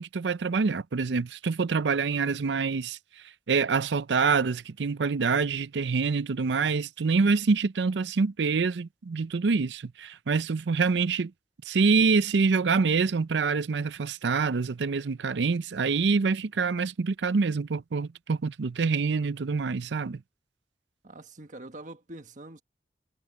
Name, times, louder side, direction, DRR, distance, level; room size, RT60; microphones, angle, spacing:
voice 1, 0.0-3.0 3.5-11.3 11.7-20.2, right 4 dB, 80° right, 0.5 m, -26 dB
voice 2, 21.0-22.6, right 2 dB, 45° right, 1.5 m, -44 dB
head